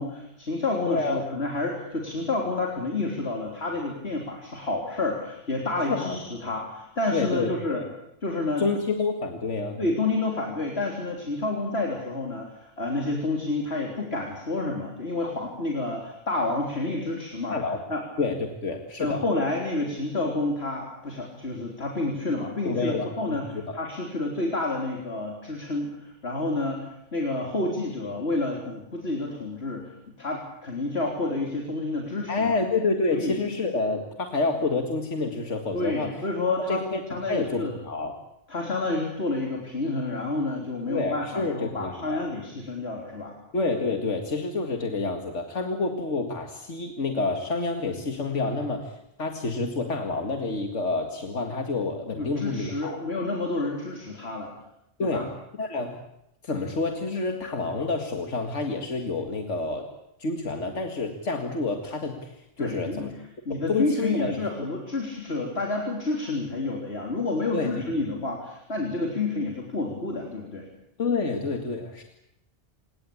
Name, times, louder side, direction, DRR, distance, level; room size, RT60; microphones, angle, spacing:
voice 1, 0.0-7.8 8.2-8.7 9.8-17.6 17.9-18.0 19.0-32.6 33.1-33.4 35.7-36.8 37.1-37.7 38.5-43.3 52.2-54.5 55.0-55.3 62.6-63.1 63.5-70.7, left 2 dB, 60° left, 0 dB, 3.9 m, -29 dB
voice 2, 0.9-1.2 5.9-6.2 7.1-7.8 8.6-9.8 17.5-17.8 18.2-19.2 22.6-23.4 23.7-23.8 32.3-36.2 36.7-37.0 37.3-38.2 40.9-42.3 43.5-53.0 55.0-55.3 55.6-56.0 56.4-59.9 60.2-63.1 63.5-64.4 67.5-67.7 71.0-72.0, left 3 dB, 85° left, 4 dB, 2.4 m, -28 dB
27.5 x 18.5 x 8.7 m, 0.82 s
omnidirectional pair, 1.2 m